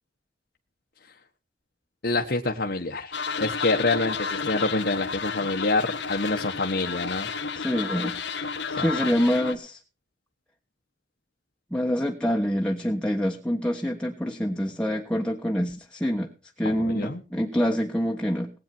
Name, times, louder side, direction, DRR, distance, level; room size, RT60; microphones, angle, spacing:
voice 1, 2.0-7.3 8.8-8.9 16.6-17.2, left 2 dB, 60° left, 2 dB, 1.2 m, -27 dB
sound 1, 3.1-9.5, left 5 dB, 85° left, 1.7 m, -31 dB
voice 2, 7.5-8.2 8.7-9.8 11.7-16.3 16.6-18.5, equal, 5° left, 1 dB, 1.3 m, -26 dB
19.5 x 9.0 x 4.4 m, 0.34 s
head